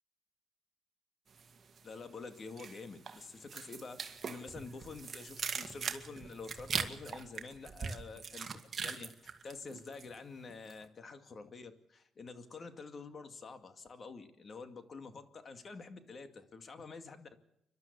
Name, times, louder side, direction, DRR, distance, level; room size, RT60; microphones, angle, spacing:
sound 1, 1.4-2.0 2.3-10.2 10.5-10.8, right 5 dB, 40° right, 2.0 m, -41 dB
voice 1, 1.8-17.4, left 4 dB, 45° left, 8 dB, 2.3 m, -48 dB
29.5 x 12.0 x 8.3 m, 0.83 s
cardioid pair, 90°, 0 cm